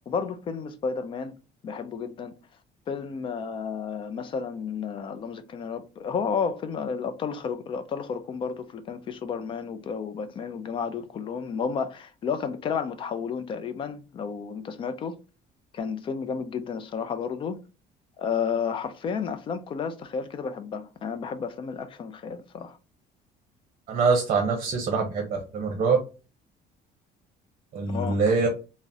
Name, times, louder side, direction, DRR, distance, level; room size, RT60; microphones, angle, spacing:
voice 1, 0.1-1.3 1.6-2.3 2.9-15.1 15.7-17.6 18.2-22.8 27.9-28.2, left 6 dB, 30° left, 0.4 m, -32 dB
voice 2, 23.9-25.3 25.5-26.0 27.7-28.5, right 4 dB, 40° right, 0.7 m, -23 dB
3.6 x 2.0 x 2.6 m
cardioid pair, 160°, 17 cm